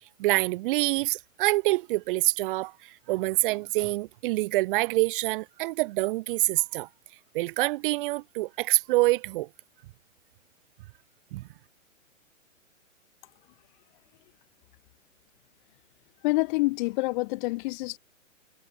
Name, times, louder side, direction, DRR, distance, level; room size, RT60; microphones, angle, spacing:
voice 1, 0.2-6.9 7.3-9.5 11.3-11.4, right 19 dB, 40° right, 4.1 m, -26 dB
voice 2, 16.2-18.0, left 23 dB, 35° left, 3.7 m, -27 dB
hypercardioid pair, 140°, 41 cm